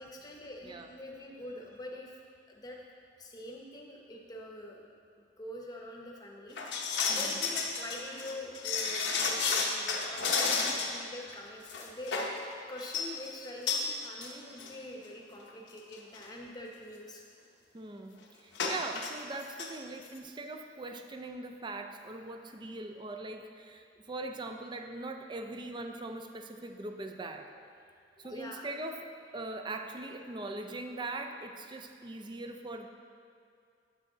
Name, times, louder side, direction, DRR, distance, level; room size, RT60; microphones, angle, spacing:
voice 1, 0.0-2.2 2.5-2.8 3.2-4.8 5.4-12.2 12.7-17.2 28.2-28.7, left 1 dB, 20° left, -1 dB, 0.8 m, -45 dB
voice 2, 0.6-1.0 7.1-7.4 17.7-27.5 28.2-32.9, right 2 dB, 25° right, 5 dB, 0.4 m, -41 dB
sound 1, 6.6-11.0 11.3-11.4 11.7-12.4 12.8-13.1 13.7-13.9 14.2-14.3 14.6-14.7 15.5-15.6 15.9-16.2 18.6-19.1 19.4-19.7 20.0-20.1, left 5 dB, 80° left, 0.8 m, -31 dB
8.0 x 6.2 x 3.9 m, 2.3 s
head